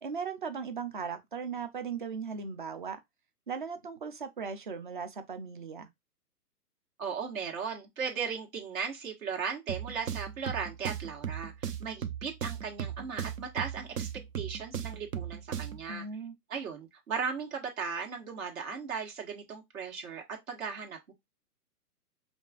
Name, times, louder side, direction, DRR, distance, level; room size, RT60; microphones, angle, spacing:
voice 1, 0.0-3.0 3.5-5.9 15.8-16.4, right 6 dB, 35° right, 0.4 m, -38 dB
voice 2, 7.0-14.1 14.3-16.1 16.5-21.1, right 6 dB, 60° right, 1.7 m, -37 dB
sound 1, 9.7-15.9, right 8 dB, 90° right, 0.8 m, -38 dB
5.2 x 2.5 x 2.4 m
hypercardioid pair, 150°, 46 cm